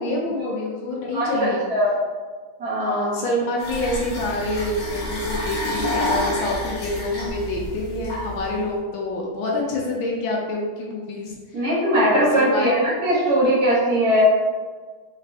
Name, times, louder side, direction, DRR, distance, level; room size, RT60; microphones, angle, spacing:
voice 1, 0.0-1.6 2.8-11.3 12.0-12.8, left 2 dB, 75° left, -2 dB, 1.4 m, -27 dB
voice 2, 1.1-1.9 2.6-3.2 11.5-14.2, right 1 dB, 50° right, -7 dB, 1.7 m, -20 dB
sound 1, 3.6-8.6, left 1 dB, 45° left, 0.9 m, -29 dB
4.1 x 3.6 x 3.2 m, 1.5 s
omnidirectional pair, 2.2 m